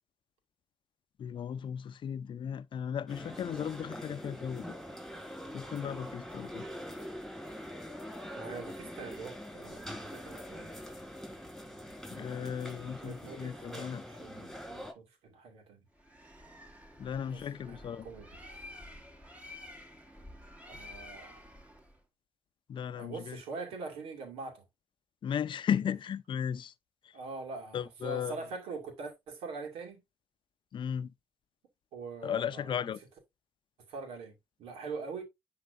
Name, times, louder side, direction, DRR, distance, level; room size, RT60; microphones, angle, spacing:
voice 1, 1.2-4.7 5.5-6.7 12.1-14.0 17.0-18.1 22.7-23.4 25.2-26.7 27.7-28.4 30.7-31.1 32.2-33.0, left 8 dB, 55° left, 0.6 m, -35 dB
sound 1, 3.1-14.9, equal, ahead, 3.9 m, -44 dB
voice 2, 8.4-10.7 12.7-15.8 17.3-18.4 20.6-21.4 22.9-24.6 27.1-30.0 31.9-32.9 33.9-35.2, right 4 dB, 85° right, 2.3 m, -43 dB
Bird, 16.0-22.0, left 1 dB, 15° right, 2.2 m, -50 dB
10.5 x 3.8 x 2.6 m
supercardioid pair, 65°, 10 cm